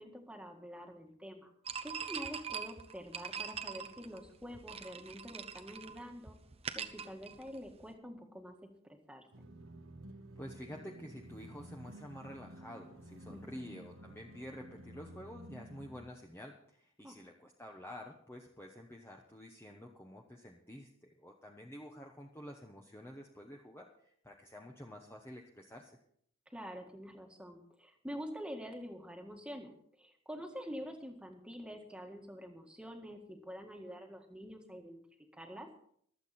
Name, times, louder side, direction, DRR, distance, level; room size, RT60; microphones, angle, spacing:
voice 1, 0.0-1.5 1.8-6.4 6.7-8.5 8.8-9.3 13.3-13.6 17.0-17.2 26.5-29.7 30.0-35.0 35.3-35.7, equal, 5° right, 3 dB, 1.7 m, -47 dB
sound 1, 1.6-7.9, right 7 dB, 25° right, 0.8 m, -43 dB
sound 2, 9.3-16.1, right 1 dB, 60° right, 1.3 m, -52 dB
voice 2, 10.4-26.0, equal, 10° left, 1 dB, 1.0 m, -49 dB
24.5 x 8.3 x 4.3 m, 0.65 s
head